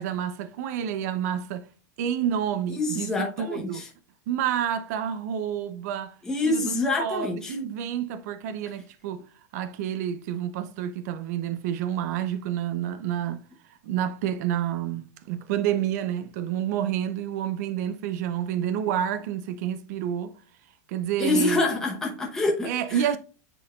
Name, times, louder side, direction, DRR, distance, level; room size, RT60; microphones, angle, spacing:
voice 1, 0.0-1.7 2.0-3.9 4.3-6.2 6.4-6.7 7.0-9.2 9.5-13.4 13.8-20.4 20.9-21.6 22.6-23.2, right 9 dB, 60° right, 0.6 m, -29 dB
voice 2, 2.7-3.9 6.3-7.6 21.2-23.0, left 2 dB, 5° left, 0.9 m, -26 dB
9.8 x 4.0 x 2.4 m
supercardioid pair, 170°, 10 cm